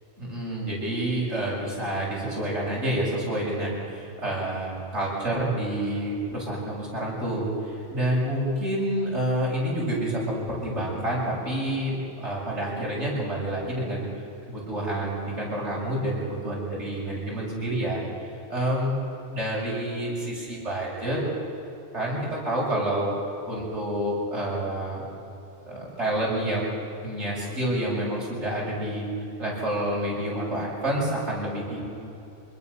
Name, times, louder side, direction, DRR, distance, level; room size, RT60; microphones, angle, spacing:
voice 1, 0.2-14.1 14.5-18.9 19.3-21.2 21.9-23.1 23.5-25.0 25.6-26.7 27.0-29.1 29.4-31.8, right 1 dB, 55° right, -5 dB, 7.4 m, -28 dB
25.0 x 21.0 x 7.0 m, 2.9 s
omnidirectional pair, 1.4 m